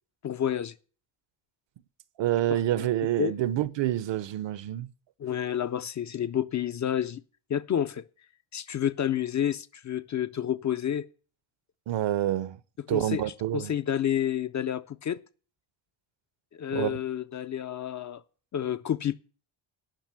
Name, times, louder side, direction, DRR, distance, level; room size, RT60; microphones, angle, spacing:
voice 1, 0.2-0.7 2.5-2.9 3.2-3.3 5.2-7.2 7.5-8.0 8.5-11.0 12.9-13.2 13.5-15.2 16.5-18.2 18.5-19.2, left 10 dB, 40° left, 0.4 m, -29 dB
voice 2, 2.2-4.9 11.9-12.6 12.9-13.7 16.7-17.0, right 13 dB, 65° right, 0.7 m, -27 dB
10.5 x 5.9 x 7.5 m
cardioid pair, 165°, 48 cm